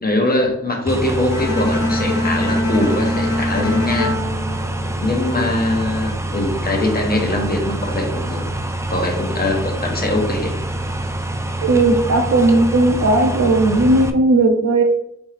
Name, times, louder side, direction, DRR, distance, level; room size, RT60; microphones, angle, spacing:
voice 1, 0.0-4.1 5.0-8.4 8.9-10.5, left 2 dB, 30° left, 1 dB, 0.9 m, -22 dB
sound 1, 0.9-14.1, right 1 dB, 10° right, 0.3 m, -25 dB
Bowed string instrument, 1.3-5.4, left 1 dB, 80° left, 1.1 m, -23 dB
voice 2, 11.6-14.8, right 2 dB, 60° right, 4 dB, 0.7 m, -15 dB
4.3 x 3.5 x 3.3 m, 0.74 s
wide cardioid pair, 120°, 31 cm